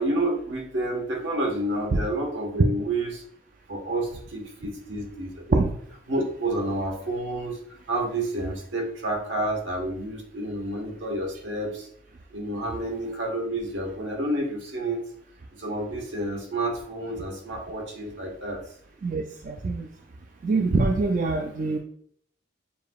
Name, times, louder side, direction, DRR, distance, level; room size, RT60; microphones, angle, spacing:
voice 1, 0.0-3.2 3.7-5.6 6.1-7.6 7.9-11.9 12.3-15.0 15.6-18.6, right 1 dB, 80° right, 0 dB, 1.2 m, -29 dB
voice 2, 19.0-19.9 20.4-21.8, right 3 dB, 45° right, 2 dB, 0.3 m, -24 dB
6.7 x 2.8 x 2.3 m, 0.64 s
head